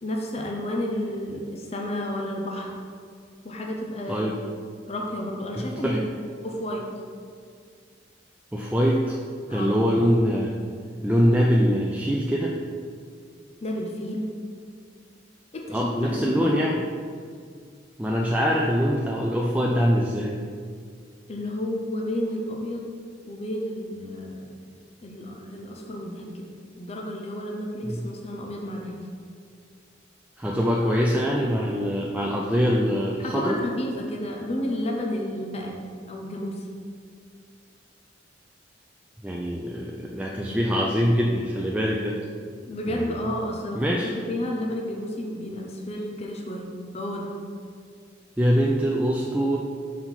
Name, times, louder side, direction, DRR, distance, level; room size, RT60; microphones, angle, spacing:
voice 1, 0.0-2.7 3.4-4.3 4.9-6.1 6.4-6.9 9.5-9.8 13.6-14.3 15.5-16.5 21.3-22.9 23.3-24.5 25.0-26.4 26.8-29.0 33.2-35.8 36.1-36.6 42.7-46.7 46.9-47.3, left 1 dB, 35° left, 0 dB, 0.6 m, -31 dB
voice 2, 5.5-6.0 8.5-9.2 9.5-10.5 11.0-12.8 15.7-16.8 18.0-20.4 27.8-28.0 30.4-33.6 39.2-42.2 42.9-43.2 43.8-44.1 48.4-49.6, equal, 5° right, -3 dB, 0.3 m, -23 dB
5.7 x 4.2 x 4.4 m, 2.1 s
head